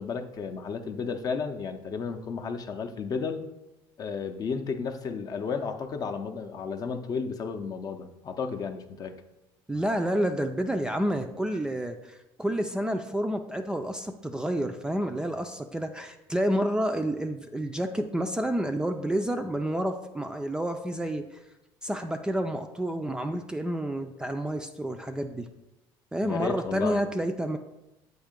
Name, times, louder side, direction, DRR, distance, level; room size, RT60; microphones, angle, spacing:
voice 1, 0.0-3.4 4.0-9.2 26.2-27.0, left 5 dB, 40° left, 6 dB, 0.6 m, -33 dB
voice 2, 9.7-21.4 21.8-25.5 26.1-27.6, right 1 dB, 10° right, 5 dB, 0.4 m, -29 dB
7.8 x 2.7 x 5.1 m, 0.94 s
cardioid pair, 115°, 10 cm